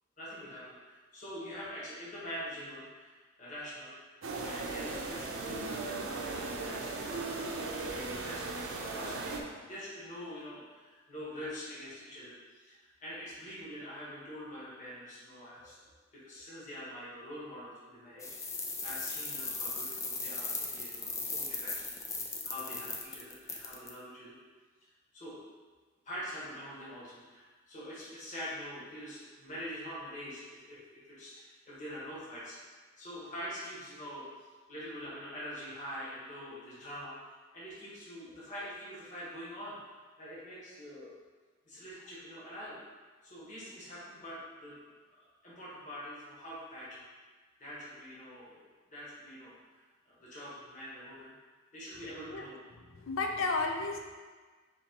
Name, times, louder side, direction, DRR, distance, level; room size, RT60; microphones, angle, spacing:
voice 1, 0.2-3.9 4.4-7.5 8.2-9.4 9.7-24.4 25.1-25.4 26.0-32.6 33.0-39.8 40.2-41.1 41.7-42.8 43.2-44.8 45.1-47.0 47.6-48.6 48.9-49.8 50.0-51.3 51.7-52.6, equal, 40° left, -8 dB, 1.3 m, -45 dB
sound 1, 4.2-9.4, right 3 dB, 85° right, 0.6 m, -37 dB
sound 2, 18.2-23.9, left 3 dB, 15° left, 0.3 m, -37 dB
voice 2, 52.7-54.0, left 3 dB, 85° left, 2 dB, 0.6 m, -33 dB
4.2 x 2.9 x 4.4 m, 1.4 s
head